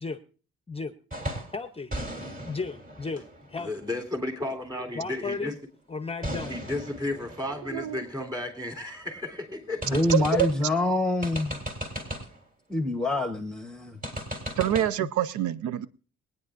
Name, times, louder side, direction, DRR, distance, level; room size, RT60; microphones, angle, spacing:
sound 1, 1.1-1.6 1.9-4.5 6.2-9.0 9.3-9.4 9.8-10.7 11.2-12.4 14.0-14.9, equal, 30° right, 3.4 m, -37 dB
voice 1, 1.5-1.9 2.4-3.7 5.0-5.5 5.9-6.6 10.3-10.5 15.0-15.1, left 4 dB, 20° left, 10 dB, 0.7 m, -34 dB
voice 2, 3.6-5.5 6.5-9.9, left 2 dB, 15° right, 2 dB, 3.3 m, -33 dB
voice 3, 9.9-11.6 12.7-14.0, left 2 dB, ahead, 7 dB, 1.0 m, -26 dB
voice 4, 14.6-15.9, right 11 dB, 75° right, 16 dB, 0.6 m, -26 dB
22.5 x 9.3 x 2.5 m, 0.39 s
cardioid pair, 90°, 30 cm